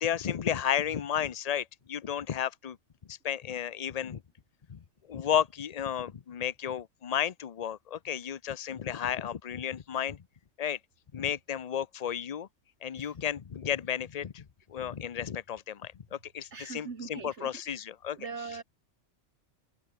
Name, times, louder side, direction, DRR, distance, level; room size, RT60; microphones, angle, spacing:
voice 1, 0.0-2.8 3.1-4.2 4.7-4.8 5.1-10.2 10.6-10.8 11.1-12.5 12.8-18.2, left 9 dB, 40° left, 0.7 m, -33 dB
voice 2, 16.5-17.9 18.1-18.6, right 5 dB, 70° right, 2.1 m, -42 dB
open air
omnidirectional pair, 1.2 m